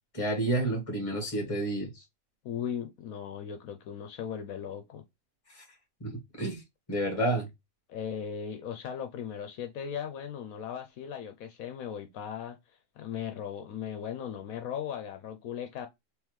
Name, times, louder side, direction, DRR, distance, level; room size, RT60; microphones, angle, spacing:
voice 1, 0.1-2.0 5.5-5.6 6.0-6.6 6.9-7.5, right 1 dB, 25° left, 1.6 m, -30 dB
voice 2, 2.4-5.0 7.9-12.6 13.0-15.9, left 8 dB, 75° left, 1.1 m, -37 dB
3.6 x 3.2 x 3.1 m
omnidirectional pair, 1.5 m